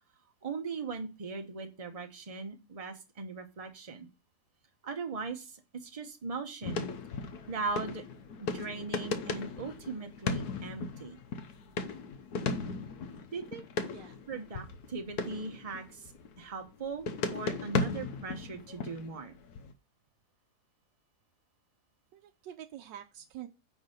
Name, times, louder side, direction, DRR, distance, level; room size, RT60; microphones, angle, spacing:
voice 1, 0.4-4.1 4.8-6.9 7.5-8.0 8.4-11.2 13.3-13.6 14.3-16.1 16.4-19.4, right 4 dB, 25° right, 5 dB, 0.9 m, -39 dB
sound 1, 6.6-16.7 17.1-19.7, left 4 dB, 65° left, 1.3 m, -37 dB
voice 2, 22.1-23.5, right 11 dB, 85° right, 5 dB, 1.3 m, -46 dB
9.7 x 3.7 x 6.5 m, 0.30 s
omnidirectional pair, 1.9 m